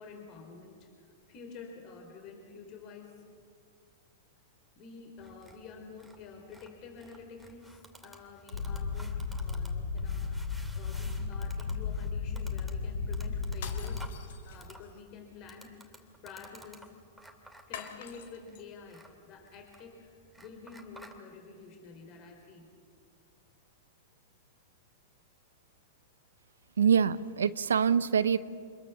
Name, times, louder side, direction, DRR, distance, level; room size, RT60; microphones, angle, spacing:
voice 1, 0.0-3.2 4.8-10.5 10.7-14.1 14.4-16.9 17.7-22.7, left 5 dB, 40° left, 4 dB, 4.3 m, -49 dB
sound 1, 5.2-21.2, right 1 dB, ahead, 2.6 m, -55 dB
sound 2, 8.5-14.1, left 5 dB, 90° left, 1.3 m, -34 dB
sound 3, 13.5-15.0 17.7-18.6, left 8 dB, 65° left, 2.7 m, -46 dB
voice 2, 26.8-28.4, right 7 dB, 85° right, 16 dB, 0.8 m, -25 dB
27.0 x 21.5 x 7.2 m, 2.1 s
hypercardioid pair, 120°, 0 cm